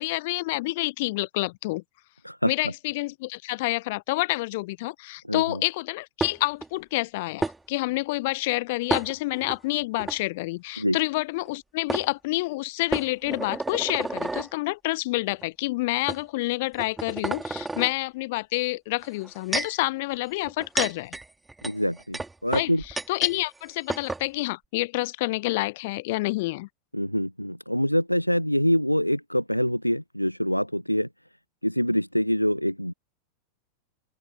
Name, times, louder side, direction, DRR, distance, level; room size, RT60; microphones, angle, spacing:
voice 1, 0.0-1.8 2.4-21.2 22.5-22.7 23.1-26.7, left 21 dB, 50° left, 0.6 m, -28 dB
voice 2, 2.2-2.7 5.3-5.6 10.8-11.0 21.6-22.8 26.9-31.1 31.6-32.9, equal, 90° left, 0.4 m, -25 dB
sound 1, 6.2-6.7 7.4-7.6 8.9-9.6 10.0-10.2 11.5-11.6 11.9-12.1 12.9-14.5 15.3-15.4 16.1-16.2 16.7-17.9 19.0-19.8 20.4-23.4 23.6-23.7 23.9-24.2, right 3 dB, 10° right, 2.7 m, -31 dB
open air
figure-of-eight pair, 90°, 0 cm